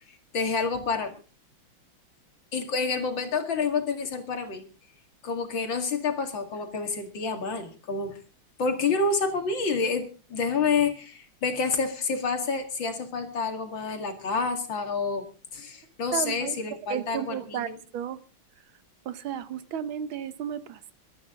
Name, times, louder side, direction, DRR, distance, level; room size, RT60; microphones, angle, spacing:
voice 1, 0.3-1.2 2.5-4.6 5.2-8.1 8.6-15.3 15.5-17.8, left 4 dB, 65° left, 2.9 m, -28 dB
voice 2, 16.1-16.6 16.9-18.2 19.0-20.9, right 9 dB, 75° right, 1.7 m, -33 dB
22.0 x 13.0 x 3.7 m
omnidirectional pair, 2.3 m